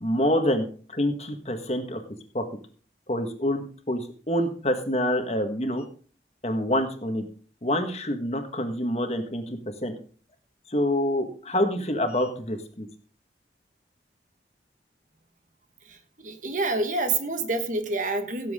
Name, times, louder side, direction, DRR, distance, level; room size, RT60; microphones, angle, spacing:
voice 1, 0.0-2.0 2.3-2.4 3.1-5.8 6.4-7.2 7.6-9.9 10.7-12.9, left 1 dB, 35° left, 6 dB, 1.6 m, -27 dB
voice 2, 15.8-18.5, right 3 dB, 45° right, 7 dB, 1.5 m, -28 dB
17.0 x 7.6 x 3.7 m, 0.42 s
head